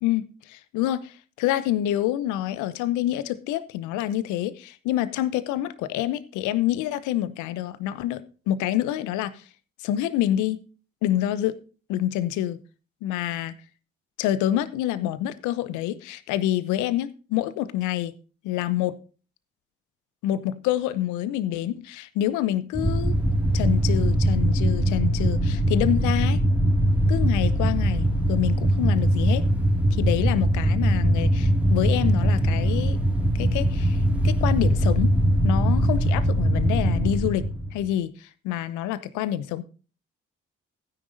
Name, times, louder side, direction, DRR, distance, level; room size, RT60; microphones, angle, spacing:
voice 1, 0.0-9.4 9.8-10.6 11.0-11.6 11.9-12.6 13.0-13.5 14.2-18.1 18.4-19.0 20.2-23.1 23.5-26.4 27.1-29.4 29.9-33.0 33.3-34.0 34.2-35.1 35.4-39.6, left 13 dB, 70° left, 15 dB, 0.9 m, -27 dB
sound 1, 22.7-37.9, right 1 dB, 5° right, 2.2 m, -22 dB
15.5 x 9.8 x 2.7 m, 0.36 s
hypercardioid pair, 40°, 31 cm